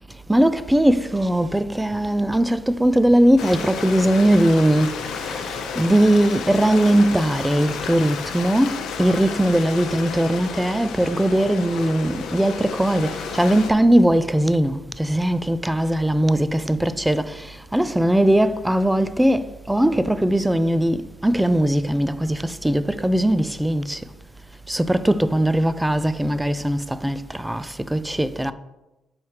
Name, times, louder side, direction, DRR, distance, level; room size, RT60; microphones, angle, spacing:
voice 1, 0.3-5.0 5.8-17.4 17.7-24.0 24.7-28.5, right 1 dB, 5° right, 0.3 m, -20 dB
Stream, 3.4-13.7, left 5 dB, 80° left, 0.7 m, -32 dB
5.6 x 4.7 x 4.6 m
cardioid pair, 90°, 0 cm